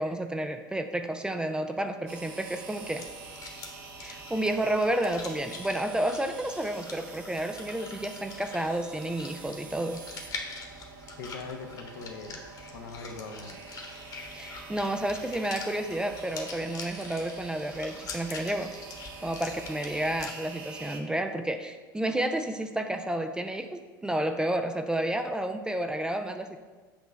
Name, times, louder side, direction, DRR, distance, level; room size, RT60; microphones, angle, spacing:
voice 1, 0.0-3.1 4.0-10.0 14.3-18.7 19.2-26.6, right 1 dB, 5° right, 6 dB, 0.4 m, -31 dB
sound 1, 2.1-21.0, right 4 dB, 55° right, 1.0 m, -46 dB
sound 2, 2.8-20.3, left 4 dB, 35° left, 1.2 m, -44 dB
voice 2, 11.2-12.4 12.7-13.6, left 4 dB, 60° left, 5 dB, 0.8 m, -41 dB
8.6 x 3.3 x 5.3 m, 1.4 s
figure-of-eight pair, 75°, 12 cm